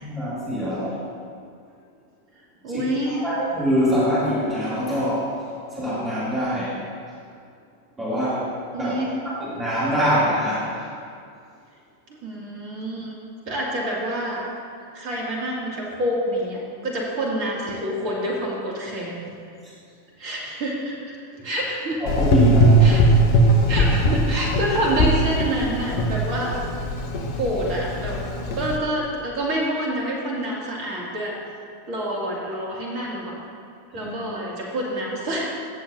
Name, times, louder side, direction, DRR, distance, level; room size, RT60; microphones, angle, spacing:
voice 1, 0.0-1.0 2.7-5.3 5.7-6.8 8.0-8.5 8.8-9.0 9.2-10.8 21.4-21.5 22.0-22.8 33.9-34.1, equal, 15° right, -10 dB, 2.6 m, -24 dB
voice 2, 2.6-3.2 8.7-9.1 12.2-13.2 13.5-14.5 14.9-19.3 20.2-21.2 21.4-22.0 22.8-23.0 23.7-26.6 27.4-28.3 28.5-31.3 31.9-33.4 33.9-35.5, right 1 dB, 40° right, -3 dB, 2.2 m, -27 dB
Gurgling / Engine, 22.1-28.8, right 1 dB, 45° left, 1.0 m, -20 dB
16.0 x 7.2 x 2.6 m, 2.4 s
figure-of-eight pair, 90°, 0 cm